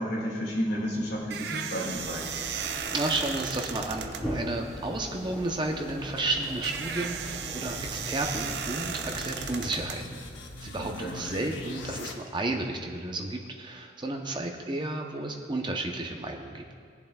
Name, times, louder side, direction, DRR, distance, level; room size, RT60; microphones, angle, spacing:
voice 1, 0.0-2.2 10.8-11.2, equal, 55° left, -3 dB, 2.2 m, -31 dB
sound 1, 0.7-10.7, right 7 dB, 55° right, 0.5 m, -37 dB
sound 2, 1.9-9.8, equal, 5° left, 1.0 m, -40 dB
voice 2, 2.9-10.2 10.6-16.6, right 2 dB, 25° right, 3 dB, 0.7 m, -32 dB
sound 3, 5.9-12.1, left 2 dB, 70° left, 0.8 m, -43 dB
19.5 x 7.1 x 2.3 m, 2.2 s
head